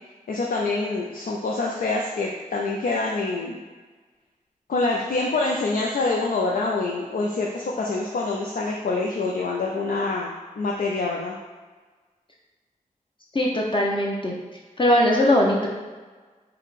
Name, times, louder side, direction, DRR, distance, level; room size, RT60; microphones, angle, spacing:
voice 1, 0.3-3.6 4.7-10.3 10.6-11.4, left 3 dB, 80° left, -2 dB, 0.5 m, -26 dB
voice 2, 13.3-14.3 14.8-15.7, left 1 dB, 35° left, -2 dB, 0.7 m, -20 dB
5.4 x 2.2 x 4.0 m, 1.4 s
wide cardioid pair, 70°, 14 cm